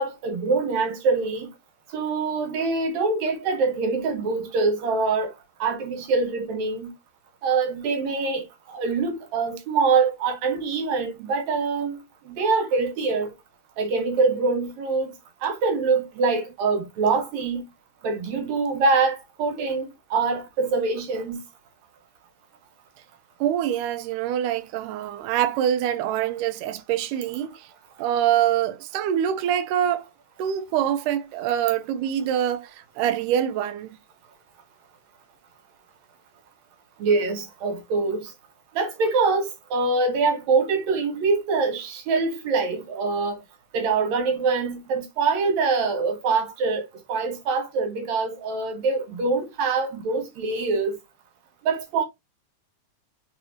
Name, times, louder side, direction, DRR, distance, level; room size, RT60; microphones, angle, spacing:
voice 1, 0.0-1.5 1.9-5.3 5.6-6.9 7.4-13.3 13.8-15.1 15.4-17.6 18.0-21.4 37.0-38.3 38.8-43.4 43.7-51.0 51.7-52.1, right 4 dB, 65° right, 2.1 m, -24 dB
voice 2, 23.4-27.6 28.0-30.1 30.4-34.0, right 10 dB, 80° right, 2.1 m, -25 dB
4.9 x 3.9 x 2.7 m
omnidirectional pair, 3.8 m